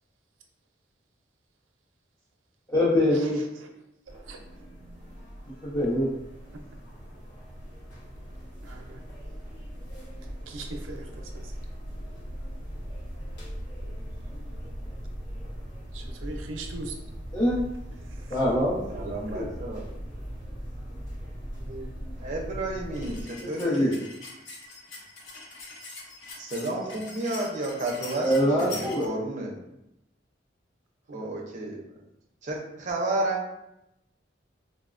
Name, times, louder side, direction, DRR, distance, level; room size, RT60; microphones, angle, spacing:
voice 1, 2.7-3.4 5.6-6.1 17.3-17.6 18.3-19.5 23.4-24.0 28.2-29.1, left 1 dB, 15° left, -11 dB, 0.7 m, -24 dB
sound 1, 4.1-23.2, equal, 60° left, 1.0 m, -39 dB
voice 2, 4.1-4.6 6.5-6.6 8.6-9.0 10.5-11.5 15.9-17.0 18.2-18.4 19.3-19.4 21.6-21.9 31.1-31.2, right 2 dB, 90° right, 3 dB, 0.4 m, -41 dB
voice 3, 18.9-19.9 22.2-24.0 26.4-29.6 31.1-31.8 32.4-33.5, right 2 dB, 40° right, -1 dB, 0.5 m, -31 dB
sound 2, 22.9-29.1, left 3 dB, 90° left, 0.7 m, -43 dB
3.8 x 2.1 x 2.4 m, 0.85 s
head